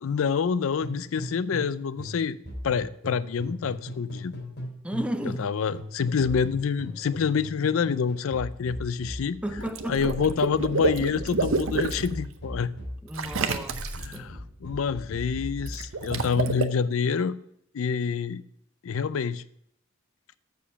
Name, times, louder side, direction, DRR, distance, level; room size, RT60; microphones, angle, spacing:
voice 1, 0.0-2.4 2.6-4.3 5.2-9.4 9.9-12.7 14.0-17.4 17.7-18.4 18.8-19.4, left 6 dB, 85° left, 0.4 m, -27 dB
sound 1, 0.8-5.5 5.7-15.8, equal, 50° left, 3.3 m, -38 dB
voice 2, 4.8-5.5 9.4-10.0 13.0-14.3, right 1 dB, 5° right, 0.5 m, -33 dB
Water / Liquid, 9.6-12.1 13.1-14.2 15.7-16.6, right 4 dB, 80° right, 0.8 m, -28 dB
7.1 x 6.7 x 5.6 m
head